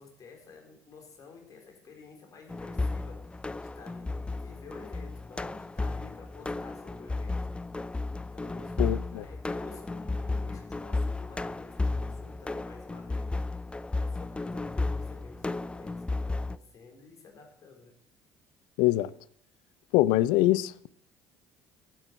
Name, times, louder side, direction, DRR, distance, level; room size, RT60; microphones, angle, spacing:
voice 1, 0.0-7.4 8.2-13.5 13.9-18.0, left 4 dB, 45° left, 4.1 m, -51 dB
sound 1, 2.5-16.6, left 3 dB, 10° left, 0.5 m, -33 dB
voice 2, 8.8-9.2 18.8-19.1 19.9-20.7, left 16 dB, 65° left, 0.5 m, -23 dB
12.0 x 9.3 x 4.7 m
hypercardioid pair, 55°, 8 cm